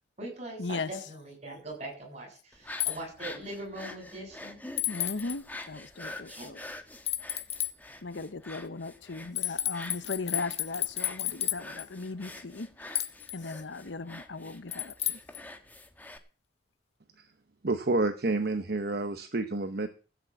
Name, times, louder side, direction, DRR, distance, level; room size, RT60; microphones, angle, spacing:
voice 1, 0.2-4.6 6.0-6.6, right 1 dB, 40° right, 7.7 m, -42 dB
sound 1, 2.5-16.2, left 2 dB, 10° left, 1.3 m, -46 dB
sound 2, 2.8-3.0 4.8-5.4 7.1-7.7 9.3-11.9 12.9-13.4 14.7-15.4, left 12 dB, 35° left, 1.1 m, -31 dB
voice 2, 4.9-6.6 8.0-12.7 13.3-15.2, left 3 dB, 85° left, 0.9 m, -37 dB
voice 3, 17.6-19.9, right 2 dB, 60° right, 0.9 m, -29 dB
15.5 x 6.3 x 8.1 m
head